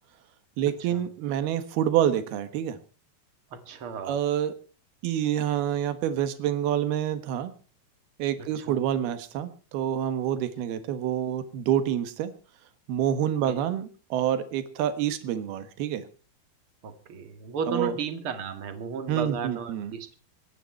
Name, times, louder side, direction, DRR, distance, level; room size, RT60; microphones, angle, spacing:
voice 1, 0.6-2.8 4.1-4.5 5.0-7.5 8.2-12.3 12.9-16.0 17.7-17.9 19.1-19.9, right 10 dB, 80° right, 10 dB, 3.4 m, -27 dB
voice 2, 3.5-4.1 8.6-8.8 13.4-13.6 16.8-20.1, right 5 dB, 45° right, 8 dB, 2.1 m, -34 dB
24.0 x 10.0 x 4.4 m, 0.36 s
omnidirectional pair, 4.4 m